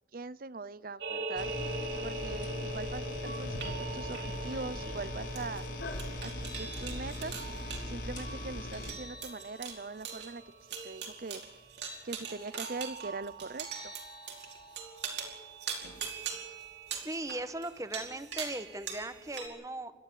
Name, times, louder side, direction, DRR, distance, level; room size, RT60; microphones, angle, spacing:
voice 1, 0.1-1.5 2.0-5.6 6.2-7.4 7.9-10.4 10.8-11.4 12.0-13.9, right 3 dB, 50° right, 18 dB, 0.7 m, -41 dB
sound 1, 1.0-19.5, right 4 dB, 70° right, 4.7 m, -41 dB
sound 2, 1.4-8.9, left 2 dB, 90° left, 3.9 m, -39 dB
voice 2, 17.0-19.9, right 2 dB, 20° right, 12 dB, 1.1 m, -38 dB
29.5 x 13.5 x 8.6 m, 1.3 s
head